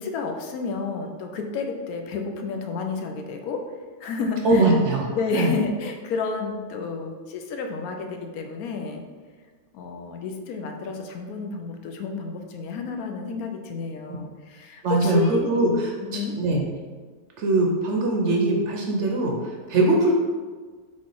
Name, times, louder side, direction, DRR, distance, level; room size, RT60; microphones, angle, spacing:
voice 1, 0.0-3.6 4.0-4.8 5.1-9.0 9.7-15.6 16.0-16.4, left 4 dB, 80° left, 4 dB, 1.0 m, -30 dB
voice 2, 4.4-5.1 5.3-5.5 14.1-14.2 14.8-16.6 17.4-20.1, right 2 dB, 65° right, 0 dB, 0.8 m, -22 dB
3.8 x 3.1 x 3.8 m, 1.5 s
omnidirectional pair, 1.5 m